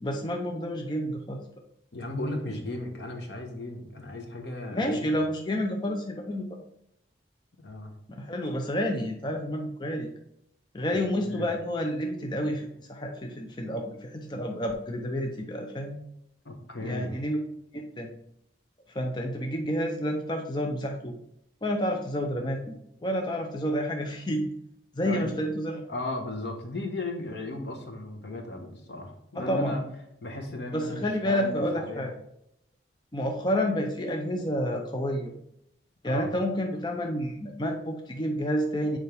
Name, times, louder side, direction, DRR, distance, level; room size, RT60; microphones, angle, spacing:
voice 1, 0.0-1.5 2.4-2.6 4.7-6.6 8.1-10.1 10.7-16.0 16.8-17.4 17.7-18.1 18.9-21.1 21.6-22.7 23.0-24.5 24.9-25.8 29.3-29.7 30.7-32.1 33.1-35.3 36.0-39.0, equal, 25° left, 3 dB, 0.5 m, -29 dB
voice 2, 1.9-5.0 7.6-7.9 10.9-11.5 16.4-17.1 25.0-25.3 25.9-29.8 30.2-32.1 36.0-36.3, left 2 dB, 75° left, 2 dB, 1.2 m, -36 dB
6.8 x 4.5 x 3.4 m, 0.77 s
head